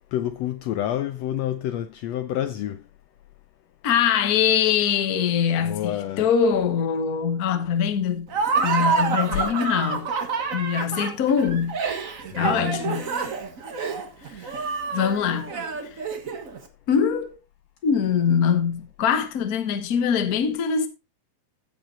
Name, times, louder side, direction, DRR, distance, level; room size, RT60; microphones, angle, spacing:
voice 1, 0.1-2.8 5.6-6.3 12.3-12.7, left 11 dB, 75° left, 1.6 m, -28 dB
voice 2, 3.8-8.3 8.6-10.1 10.5-11.8 12.3-13.1 14.4-14.5 14.9-15.5 16.9-17.3 17.8-20.9, left 7 dB, 45° left, 1.2 m, -23 dB
Laughter, 8.3-16.6, right 5 dB, 45° right, 1.1 m, -27 dB
15.0 x 5.4 x 4.2 m
omnidirectional pair, 3.4 m